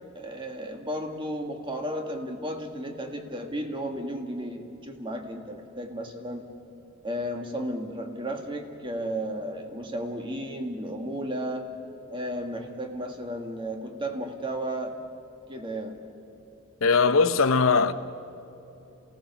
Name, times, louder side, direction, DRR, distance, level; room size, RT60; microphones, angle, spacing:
voice 1, 0.2-6.5 7.0-11.7 12.1-14.9 15.5-16.0, equal, 25° right, 1.7 m, -33 dB
voice 2, 16.8-17.9, left 4 dB, 80° left, 0.8 m, -20 dB
28.0 x 17.0 x 6.9 m
head